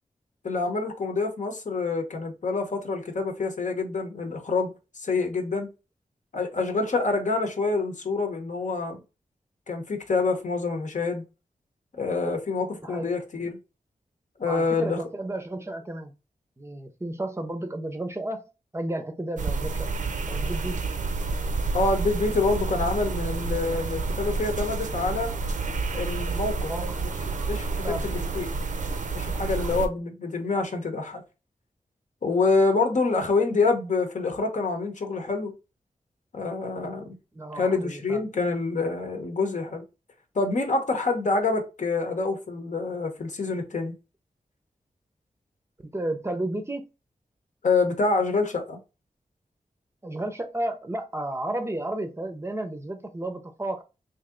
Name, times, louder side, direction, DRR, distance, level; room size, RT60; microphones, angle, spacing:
voice 1, 0.4-5.7 6.3-9.0 9.7-11.2 12.0-13.6 14.4-15.0 21.7-25.3 25.9-26.7 27.5-28.5 29.1-31.2 32.2-35.5 36.3-37.1 37.5-39.8 40.3-44.0 47.6-48.8, left 3 dB, 60° left, 0.9 m, -26 dB
voice 2, 12.8-13.1 14.5-16.2 16.6-18.4 18.7-19.9 20.3-20.8 26.7-27.0 27.8-28.1 29.6-29.9 37.3-38.2 45.9-46.9 50.0-53.8, right 1 dB, 20° right, 0.6 m, -32 dB
sound 1, 19.4-29.9, right 3 dB, 65° right, 0.5 m, -29 dB
3.2 x 2.7 x 3.7 m
wide cardioid pair, 95°, 14 cm